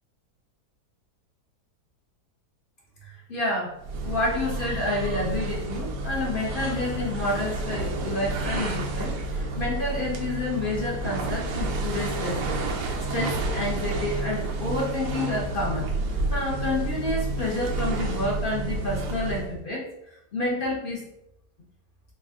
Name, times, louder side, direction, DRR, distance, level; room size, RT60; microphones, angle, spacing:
voice 1, 3.0-3.7 4.0-15.9 16.3-21.0, left 1 dB, 45° left, -3 dB, 0.7 m, -29 dB
sound 1, 3.8-19.6, right 2 dB, 90° right, 1.3 m, -30 dB
4.4 x 2.4 x 3.5 m, 0.82 s
omnidirectional pair, 1.7 m